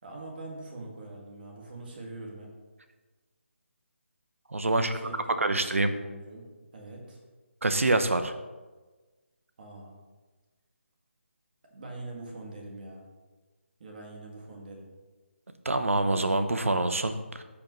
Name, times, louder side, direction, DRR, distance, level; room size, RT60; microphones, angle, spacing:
voice 1, 0.0-2.5 4.7-6.4 6.7-7.2 9.6-10.0 11.7-13.0 13.8-14.9, right 2 dB, 45° right, -1 dB, 2.1 m, -43 dB
voice 2, 4.5-5.0 5.4-5.9 7.6-8.3 15.6-17.4, right 2 dB, 85° right, 8 dB, 0.9 m, -26 dB
14.0 x 5.2 x 3.2 m, 1.3 s
figure-of-eight pair, 160°, 7 cm